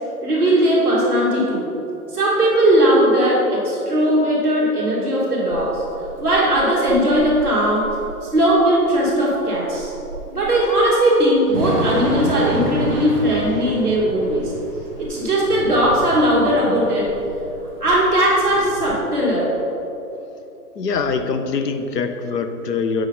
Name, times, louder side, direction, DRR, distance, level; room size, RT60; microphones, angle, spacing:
voice 1, 0.2-1.7 2.1-5.8 6.2-7.8 8.2-9.9 10.2-14.5 15.0-17.1 17.8-19.5, right 1 dB, 5° left, -16 dB, 1.0 m, -18 dB
Thunder / Rain, 5.5-19.0, right 2 dB, 20° right, 1.2 m, -30 dB
voice 2, 20.8-23.1, left 5 dB, 90° left, 7 dB, 0.9 m, -23 dB
7.8 x 4.8 x 4.1 m, 3.0 s
hypercardioid pair, 175°, 47 cm